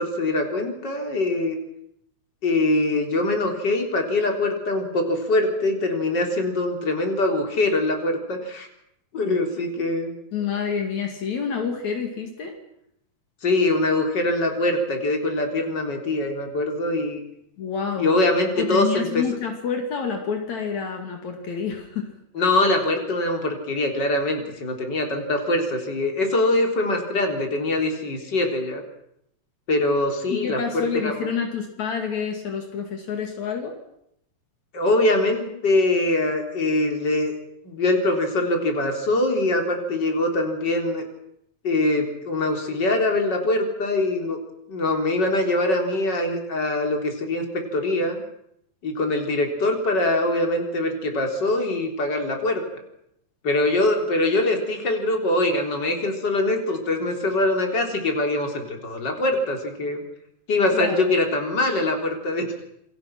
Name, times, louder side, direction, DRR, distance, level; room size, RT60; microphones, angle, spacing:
voice 1, 0.0-1.6 2.4-8.7 9.1-10.1 13.4-17.2 18.0-19.2 22.4-28.8 29.7-30.6 30.9-31.3 34.7-37.3 37.6-41.0 41.6-44.4 44.7-48.2 48.8-52.6 53.4-60.0 60.5-62.5, left 2 dB, 35° left, 3 dB, 4.1 m, -23 dB
voice 2, 10.3-12.6 17.6-18.1 18.6-22.1 30.3-33.8 60.7-61.1, left 6 dB, 70° left, 4 dB, 3.7 m, -28 dB
28.0 x 23.0 x 6.0 m, 0.77 s
omnidirectional pair, 3.4 m